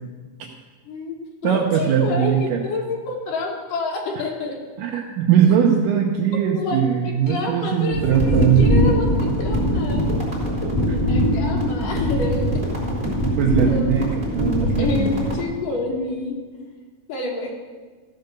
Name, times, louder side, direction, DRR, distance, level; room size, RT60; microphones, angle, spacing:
voice 1, 0.9-1.2 1.4-4.5 6.5-10.1 11.1-12.6 13.6-13.9 14.6-16.4 17.1-17.5, left 2 dB, 75° left, 0 dB, 2.9 m, -28 dB
voice 2, 1.4-2.6 4.2-4.3 4.8-8.7 10.9-11.0 13.4-14.1 14.3-15.3, right 8 dB, 80° right, 0 dB, 2.4 m, -20 dB
sound 1, 7.9-15.4, equal, 15° right, 3.1 m, -22 dB
14.5 x 5.3 x 6.7 m, 1.4 s
omnidirectional pair, 3.8 m